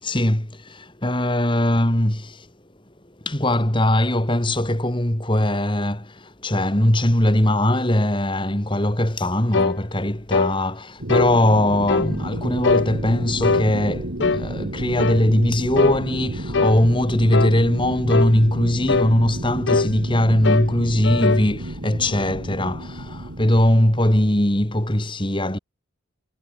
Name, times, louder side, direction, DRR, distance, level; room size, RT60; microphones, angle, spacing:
voice 1, 0.0-2.5 3.2-25.6, left 1 dB, 25° left, 2.5 m, -20 dB
sound 1, 9.5-9.8 10.3-10.5 11.1-11.3 11.9-12.1 12.6-12.9 13.4-13.7 14.2-14.5 15.0-15.2 15.8-16.0 16.5-16.8 17.3-17.6 18.1-18.3 18.9-19.1 19.7-19.9 20.4-20.7 21.0-21.5, left 4 dB, 60° left, 0.7 m, -21 dB
sound 2, 11.0-24.3, right 1 dB, 65° right, 2.4 m, -32 dB
head